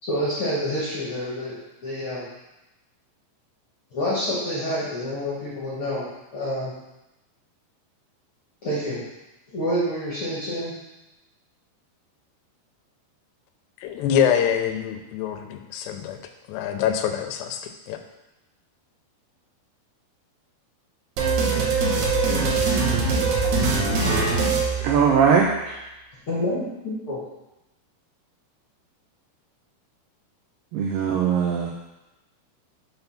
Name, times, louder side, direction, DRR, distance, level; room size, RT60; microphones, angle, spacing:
voice 1, 0.0-1.5 1.8-2.2 3.9-6.0 6.3-6.7 8.6-9.0 9.5-10.7 26.3-27.2, equal, 70° left, -7 dB, 1.3 m, -27 dB
voice 2, 13.8-16.2 16.5-18.0, left 8 dB, 85° left, 6 dB, 2.8 m, -25 dB
sound 1, 21.2-25.5, right 4 dB, 70° right, 1.8 m, -22 dB
voice 3, 24.8-25.8 30.7-31.7, right 6 dB, 85° right, 0 dB, 1.9 m, -20 dB
7.0 x 3.9 x 5.7 m, 0.98 s
omnidirectional pair, 4.7 m